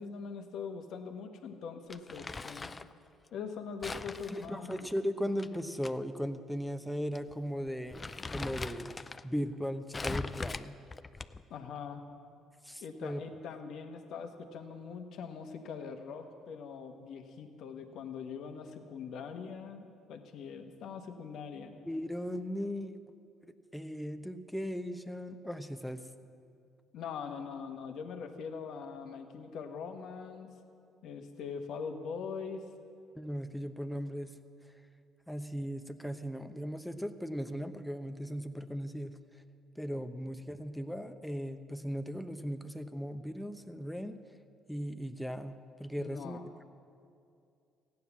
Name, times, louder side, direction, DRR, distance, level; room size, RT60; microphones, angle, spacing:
voice 1, 0.0-2.7 3.3-4.9 11.5-12.0 12.8-21.7 26.9-30.5 31.0-32.7 46.0-46.4, left 6 dB, 70° left, 5 dB, 1.3 m, -42 dB
Crumpling crinkling, 1.9-2.9 3.8-5.9 6.2-6.3 7.1-7.3 7.7-9.2 9.9-11.5, left 3 dB, 25° left, 0.4 m, -41 dB
voice 2, 4.3-8.9 9.2-10.8 12.6-13.2 21.9-23.0 23.7-26.0 33.2-34.3 35.3-39.1 39.8-44.2 44.7-46.4, equal, ahead, 7 dB, 0.9 m, -37 dB
14.5 x 9.5 x 7.2 m, 2.4 s
supercardioid pair, 70°, 0 cm